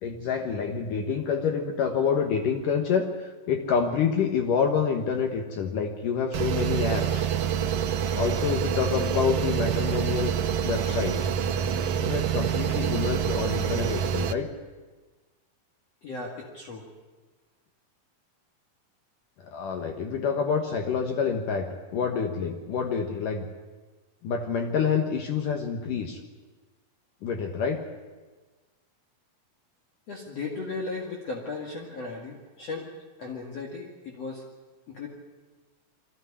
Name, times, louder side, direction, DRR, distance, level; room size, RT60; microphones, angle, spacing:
voice 1, 0.0-7.3 8.2-10.3 10.6-11.3 12.0-14.5 19.5-23.5 24.2-26.2 27.2-27.8, left 6 dB, 70° left, 3 dB, 2.8 m, -27 dB
sound 1, 6.3-14.3, right 8 dB, 85° right, 1.4 m, -27 dB
voice 2, 16.0-16.9 30.1-32.9 33.2-34.4 34.9-35.1, left 3 dB, 50° left, -1 dB, 2.9 m, -36 dB
22.5 x 15.5 x 9.8 m, 1.3 s
omnidirectional pair, 4.2 m